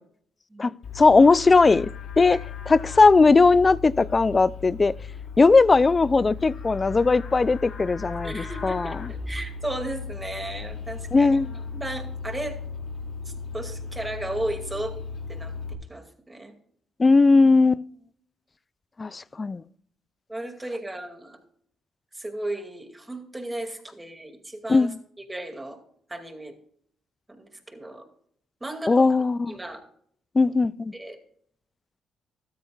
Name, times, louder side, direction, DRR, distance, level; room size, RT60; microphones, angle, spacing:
Livestock farm animals working animals, 0.8-15.7, left 5 dB, 60° left, 2.3 m, -37 dB
voice 1, 1.0-1.9 2.2-2.4 2.7-4.9 5.4-8.9 11.1-11.5 17.0-17.8 19.0-19.6 24.7-25.0 28.9-29.5 30.4-30.9, left 3 dB, 25° left, 0.3 m, -18 dB
voice 2, 8.2-11.4 11.7-12.6 13.5-15.0 15.3-16.5 20.3-21.4 22.1-25.8 26.1-26.5 27.3-28.0 28.6-29.1 29.5-29.8 30.9-31.2, right 1 dB, 15° right, 2.3 m, -35 dB
13.5 x 12.5 x 2.4 m
cardioid pair, 90°, 0 cm